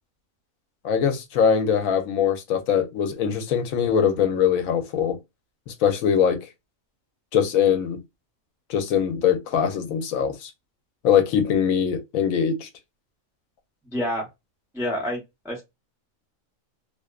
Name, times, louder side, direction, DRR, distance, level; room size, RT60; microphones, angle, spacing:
voice 1, 0.8-5.2 5.7-6.4 7.3-8.0 8.7-10.5 11.0-12.7, left 8 dB, 80° left, 1.0 m, -22 dB
voice 2, 13.9-14.3 14.7-15.6, equal, 5° right, 0.5 m, -28 dB
2.8 x 2.0 x 2.3 m
omnidirectional pair, 1.4 m